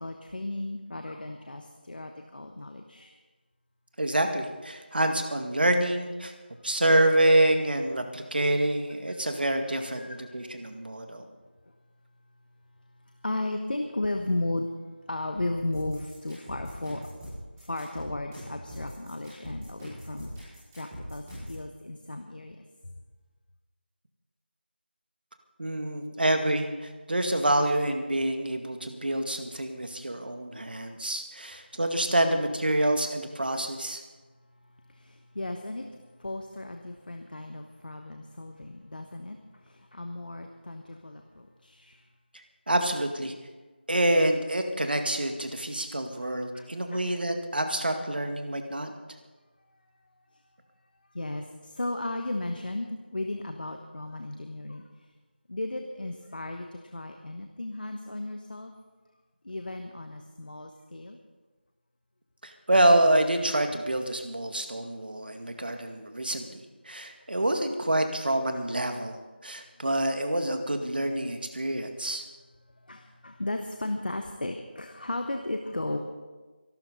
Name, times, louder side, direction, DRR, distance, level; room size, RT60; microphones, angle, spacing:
voice 1, 0.0-3.1 9.1-9.2 10.0-10.2 13.2-14.7 15.1-17.0 17.7-20.3 20.8-21.2 21.5-22.6 35.3-35.8 36.2-39.4 39.9-41.2 41.6-41.9 46.5-46.6 46.9-47.0 51.1-51.4 51.8-54.8 55.5-56.7 56.9-58.7 59.4-61.2 72.9-76.0, left 2 dB, 55° left, 4 dB, 1.3 m, -34 dB
voice 2, 4.0-6.3 6.6-11.3 25.6-34.0 42.3-43.3 43.9-48.9 62.4-72.2, right 1 dB, 60° right, 5 dB, 2.0 m, -27 dB
sound 1, 15.7-21.6, equal, 10° right, 5.3 m, -41 dB
24.5 x 12.5 x 4.1 m, 1.3 s
figure-of-eight pair, 170°, 6 cm